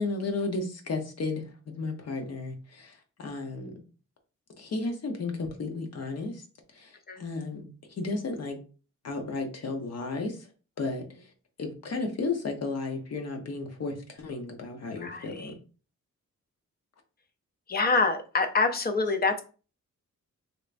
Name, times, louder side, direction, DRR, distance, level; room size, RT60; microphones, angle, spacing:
voice 1, 0.0-3.8 4.6-6.4 6.7-7.7 8.0-8.6 9.0-10.5 10.8-11.0 11.6-15.5 19.1-19.2, left 3 dB, 55° left, 4 dB, 0.8 m, -33 dB
voice 2, 15.0-15.5 17.7-19.4, left 4 dB, 30° left, 7 dB, 0.5 m, -26 dB
3.3 x 2.9 x 2.5 m, 0.36 s
wide cardioid pair, 140°, 31 cm